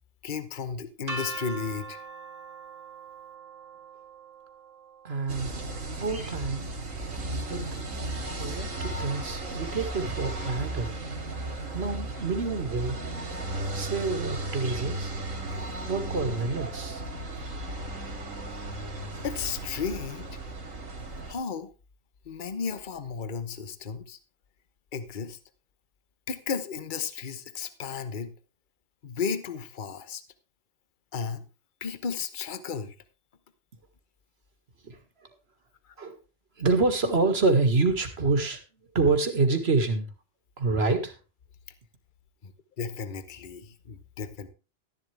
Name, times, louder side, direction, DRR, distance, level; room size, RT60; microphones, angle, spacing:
voice 1, 0.2-2.0 19.2-20.4 21.3-21.7 22.3-24.2 24.9-25.4 26.3-28.3 29.0-30.2 31.1-31.4 31.8-32.9 42.4-42.5 42.8-44.5, left 6 dB, 40° left, 12 dB, 1.1 m, -34 dB
sound 1, 1.1-7.0, right 3 dB, 70° right, 2.1 m, -42 dB
voice 2, 5.0-5.6 6.0-6.7 7.5-7.6 8.4-10.9 11.7-13.0 13.7-15.1 15.9-17.0 17.5-17.6 34.8-35.3 36.0-36.2 36.6-38.6 39.0-40.1 40.6-41.1, right 3 dB, 50° right, 8 dB, 2.0 m, -27 dB
sound 2, 5.3-21.3, right 2 dB, 90° right, 2.8 m, -35 dB
12.5 x 11.0 x 3.3 m, 0.30 s
omnidirectional pair, 1.3 m